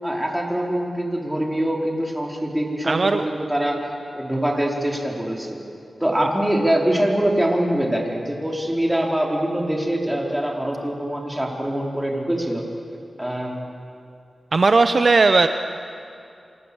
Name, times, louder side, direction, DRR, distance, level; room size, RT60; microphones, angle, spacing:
voice 1, 0.0-3.8 4.1-5.6 6.0-12.6 13.2-13.6, right 1 dB, 10° right, -1 dB, 4.9 m, -23 dB
voice 2, 2.8-3.3 14.5-15.5, right 3 dB, 55° right, 8 dB, 0.9 m, -17 dB
28.0 x 27.0 x 7.3 m, 2.5 s
wide cardioid pair, 70°, 0 cm